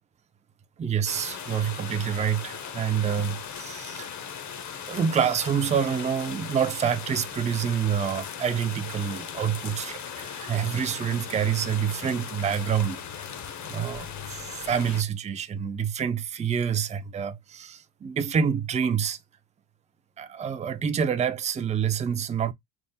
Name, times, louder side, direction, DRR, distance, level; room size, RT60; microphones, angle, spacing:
voice 1, 0.8-4.1 4.9-13.0 13.6-19.2 20.2-22.5, right 7 dB, 15° right, 0.4 m, -27 dB
sound 1, 1.1-15.0, left 7 dB, 45° left, 0.9 m, -38 dB
3.5 x 2.0 x 4.0 m
supercardioid pair, 95°, 42 cm